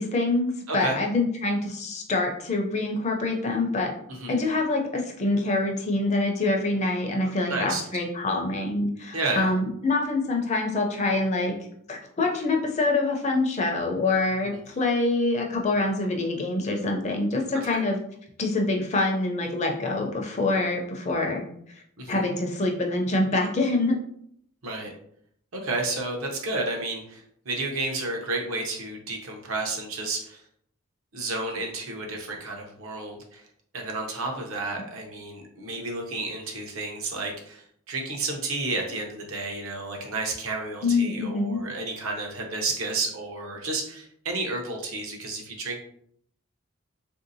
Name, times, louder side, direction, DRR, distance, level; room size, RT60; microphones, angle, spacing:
voice 1, 0.0-3.9 4.3-11.5 11.9-18.0 18.4-21.5 21.7-24.0 40.8-41.6, left 2 dB, 30° left, 1 dB, 0.4 m, -25 dB
voice 2, 0.7-1.0 4.1-4.4 7.5-7.8 9.1-9.5 14.4-14.6 22.0-22.2 24.6-24.9 25.5-30.4 31.1-33.4 33.7-45.8, right 3 dB, 70° right, 1 dB, 0.7 m, -31 dB
3.3 x 2.6 x 2.6 m, 0.67 s
head